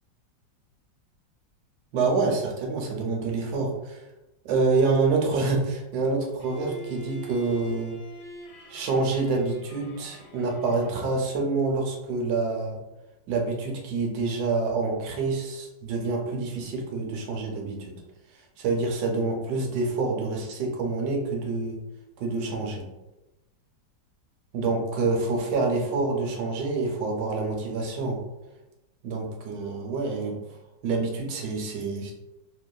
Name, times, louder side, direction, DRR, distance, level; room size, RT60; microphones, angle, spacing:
voice 1, 1.9-4.0 4.4-7.9 8.7-12.8 13.3-17.9 18.6-21.8 22.2-22.9 24.5-28.2 29.0-30.4 30.8-32.1, right 3 dB, 70° right, 1 dB, 1.0 m, -27 dB
Bowed string instrument, 6.4-11.3, right 1 dB, 70° left, 0.8 m, -43 dB
3.0 x 2.0 x 2.2 m, 1.0 s
omnidirectional pair, 1.9 m